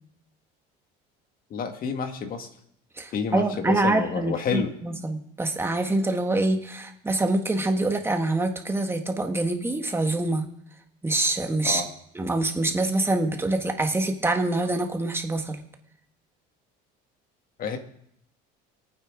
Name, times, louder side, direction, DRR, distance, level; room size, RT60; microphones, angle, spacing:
voice 1, 1.5-2.5 3.1-4.7 11.6-11.9 17.6-17.8, left 6 dB, 45° left, 6 dB, 1.9 m, -29 dB
voice 2, 3.0-10.5 11.0-11.8 12.1-15.6, right 2 dB, 10° right, 5 dB, 1.7 m, -25 dB
24.0 x 9.3 x 3.8 m, 0.74 s
cardioid pair, 120°, 21 cm